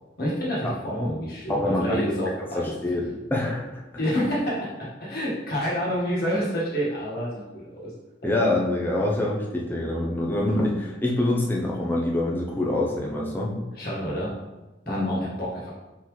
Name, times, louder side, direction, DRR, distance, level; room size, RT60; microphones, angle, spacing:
voice 1, 0.2-2.7 4.0-7.9 13.7-14.3 14.9-15.7, equal, 55° left, -6 dB, 1.5 m, -28 dB
voice 2, 1.5-2.0 2.5-3.8 8.2-13.6 14.9-15.2, left 1 dB, 10° left, -3 dB, 0.6 m, -25 dB
4.3 x 3.9 x 3.1 m, 1.1 s
head